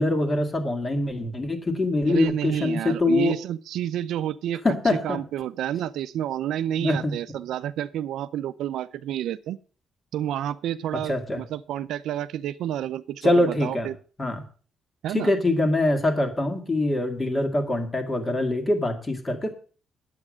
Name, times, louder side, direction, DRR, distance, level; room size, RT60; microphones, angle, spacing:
voice 1, 0.0-3.4 4.6-5.2 6.8-7.1 10.9-11.4 13.2-13.9 14.2-14.4 15.1-19.5, left 2 dB, 25° left, 5 dB, 2.0 m, -24 dB
voice 2, 2.1-4.6 5.0-9.6 10.1-14.0 15.0-15.3, right 11 dB, 90° right, 14 dB, 0.5 m, -30 dB
9.8 x 8.2 x 6.3 m, 0.40 s
cardioid pair, 135°, 0 cm